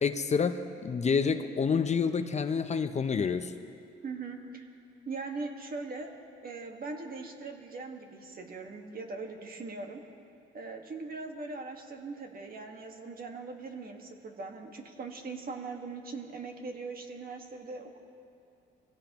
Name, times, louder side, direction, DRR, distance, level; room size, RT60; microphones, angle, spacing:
voice 1, 0.0-3.5, left 5 dB, 35° left, 8 dB, 0.7 m, -28 dB
voice 2, 4.0-4.7 5.1-6.1 6.4-10.0 10.5-18.0, right 3 dB, 50° right, 3 dB, 1.7 m, -40 dB
23.5 x 16.5 x 3.0 m, 2.5 s
cardioid pair, 90°, 20 cm